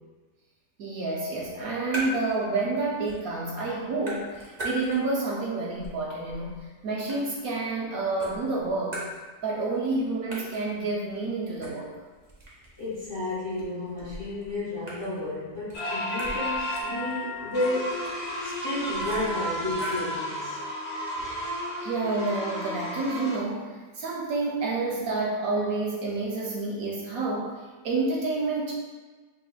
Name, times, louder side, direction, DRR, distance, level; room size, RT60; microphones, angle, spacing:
voice 1, 0.8-9.0 9.4-11.9 17.0-17.1 21.8-28.7, right 3 dB, 65° right, -3 dB, 0.9 m, -29 dB
sound 1, 1.4-2.4 2.7-3.4 3.7-5.3 5.7-7.8 8.2-9.6 9.9-10.0 10.3-20.2, right 1 dB, 40° right, 0.6 m, -41 dB
voice 2, 12.8-18.1 18.4-20.6, left 2 dB, 20° left, -9 dB, 0.9 m, -32 dB
sound 2, 15.7-23.4, left 1 dB, 50° left, 0.8 m, -32 dB
5.7 x 3.1 x 2.3 m, 1.4 s
omnidirectional pair, 2.0 m